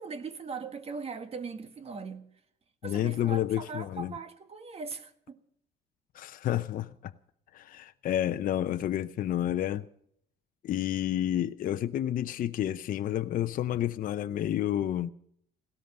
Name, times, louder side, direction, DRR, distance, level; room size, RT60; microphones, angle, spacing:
voice 1, 0.0-2.2 2.8-5.4, right 4 dB, 35° right, 1.8 m, -40 dB
voice 2, 2.8-4.1 6.1-7.1 7.5-9.8 10.6-15.1, left 11 dB, 55° left, 0.7 m, -30 dB
17.0 x 13.0 x 5.5 m
cardioid pair, 110°, 17 cm